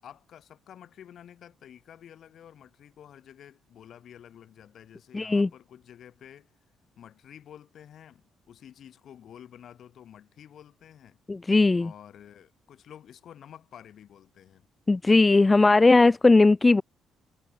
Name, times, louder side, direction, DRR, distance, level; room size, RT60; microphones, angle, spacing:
voice 1, 0.0-6.5 7.0-11.2 11.8-14.7, left 9 dB, 65° left, 5.7 m, -50 dB
voice 2, 5.1-5.5 11.3-11.9 14.9-16.8, left 3 dB, 20° left, 0.3 m, -18 dB
cardioid pair, 90°, 0 cm